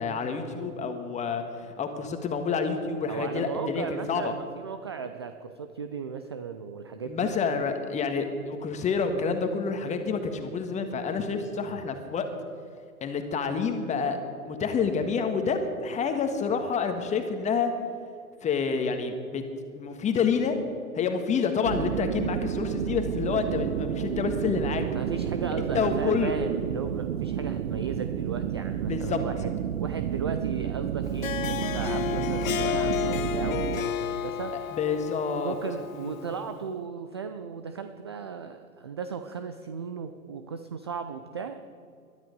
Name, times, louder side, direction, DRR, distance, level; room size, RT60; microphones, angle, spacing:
voice 1, 0.0-4.3 7.1-12.3 13.0-14.2 14.5-17.7 18.4-19.4 19.7-20.6 21.0-24.8 25.7-26.3 28.8-29.2 34.7-35.5 36.0-36.2, left 5 dB, 15° left, 6 dB, 1.6 m, -28 dB
voice 2, 3.1-7.3 24.9-29.5 29.8-34.5 35.4-41.6, right 6 dB, 20° right, 8 dB, 0.3 m, -36 dB
sound 1, 21.6-33.8, right 9 dB, 45° right, 0.9 m, -31 dB
Harp, 31.0-36.5, left 10 dB, 65° left, 1.0 m, -31 dB
21.5 x 12.5 x 5.3 m, 2.4 s
figure-of-eight pair, 115°, 44 cm